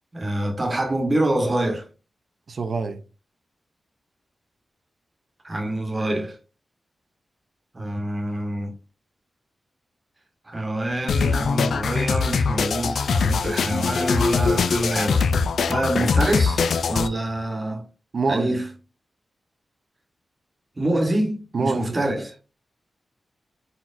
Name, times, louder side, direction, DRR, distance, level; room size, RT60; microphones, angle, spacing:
voice 1, 0.1-1.9 5.4-6.4 7.7-8.7 10.4-17.8 18.3-18.7 20.8-22.4, right 1 dB, 20° right, 1.1 m, -26 dB
voice 2, 2.5-3.0 18.1-18.6 21.5-22.0, right 4 dB, 45° right, 0.5 m, -25 dB
sound 1, 11.1-17.1, left 5 dB, 85° left, 0.4 m, -22 dB
4.5 x 4.2 x 2.5 m
wide cardioid pair, 175°, 0 cm